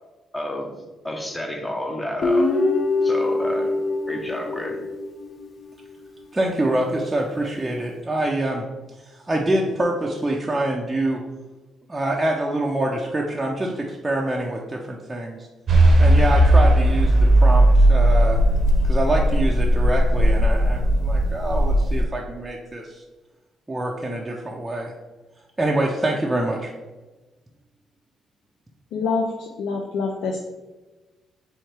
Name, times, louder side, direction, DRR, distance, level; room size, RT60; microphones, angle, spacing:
voice 1, 0.3-0.7 1.0-2.5 3.0-3.8 4.1-4.8, left 1 dB, 15° left, 3 dB, 0.8 m, -30 dB
Guitar, 2.2-5.5, left 2 dB, 50° left, 0.7 m, -23 dB
voice 2, 6.3-8.6 9.0-11.2 11.9-15.5 16.0-18.4 18.8-23.0 23.7-24.9 25.6-26.7, right 1 dB, 15° right, -2 dB, 0.5 m, -25 dB
sound 1, 15.7-22.0, right 1 dB, 55° right, 0.7 m, -17 dB
voice 3, 28.9-30.4, left 4 dB, 85° left, 1 dB, 0.4 m, -26 dB
4.3 x 3.4 x 3.3 m, 1.2 s
cardioid pair, 90°, 0 cm